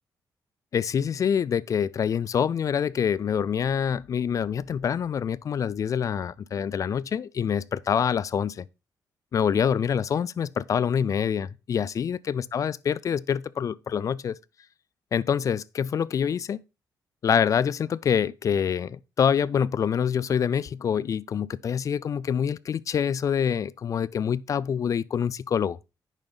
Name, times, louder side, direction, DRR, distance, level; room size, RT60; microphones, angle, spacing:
voice 1, 0.7-8.6 9.3-14.3 15.1-16.6 17.2-25.8, left 7 dB, 45° left, 0.3 m, -26 dB
9.0 x 5.7 x 3.9 m
cardioid pair, 115°, 8 cm